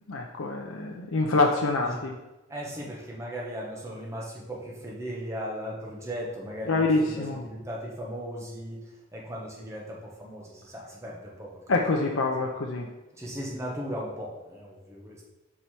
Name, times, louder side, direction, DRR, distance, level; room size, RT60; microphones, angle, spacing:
voice 1, 0.1-2.1 6.7-7.4 11.7-12.9, left 3 dB, 80° left, 1 dB, 0.6 m, -26 dB
voice 2, 2.5-12.2 13.2-15.3, equal, 15° right, -3 dB, 1.2 m, -37 dB
5.5 x 4.8 x 4.3 m, 1.1 s
head